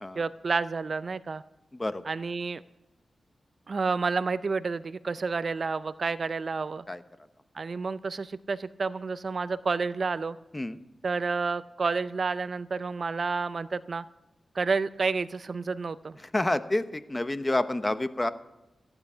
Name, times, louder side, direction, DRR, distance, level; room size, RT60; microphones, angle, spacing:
voice 1, 0.2-1.4 2.0-2.6 3.7-6.8 7.5-10.4 11.0-14.0 14.5-16.2, right 4 dB, 60° right, 16 dB, 0.5 m, -30 dB
voice 2, 16.3-18.3, left 1 dB, 25° left, 12 dB, 0.9 m, -28 dB
14.5 x 9.8 x 5.7 m, 0.99 s
cardioid pair, 55°, 0 cm